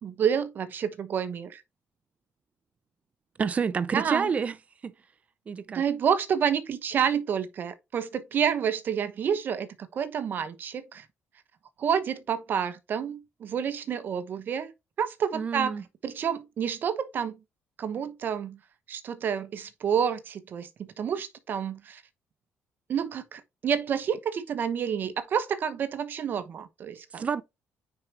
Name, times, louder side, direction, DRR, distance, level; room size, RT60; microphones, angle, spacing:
voice 1, 0.0-1.6 3.9-4.3 5.7-11.0 11.8-14.7 15.0-15.7 16.0-17.4 17.8-18.6 18.9-20.7 21.0-22.0 22.9-27.3, right 8 dB, 45° right, 1.1 m, -29 dB
voice 2, 3.4-4.6 4.8-4.9 5.5-5.8 15.3-15.8 27.1-27.4, right 6 dB, 30° right, 0.6 m, -28 dB
9.5 x 4.7 x 2.9 m
cardioid pair, 155°, 5 cm